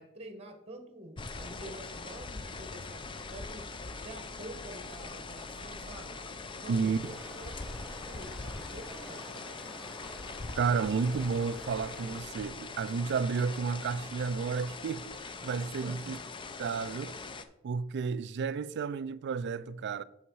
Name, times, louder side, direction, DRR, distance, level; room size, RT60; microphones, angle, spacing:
voice 1, 0.0-3.6 3.9-6.1 6.6-9.5 15.8-16.1, right 1 dB, 30° right, 1.1 m, -48 dB
sound 1, 1.2-17.4, left 3 dB, 25° left, 0.5 m, -42 dB
voice 2, 6.7-7.1 10.6-16.2 16.6-17.2 17.6-20.0, right 5 dB, 55° right, 0.3 m, -32 dB
sound 2, 7.0-12.2, equal, ahead, 0.9 m, -49 dB
6.4 x 5.8 x 4.7 m
head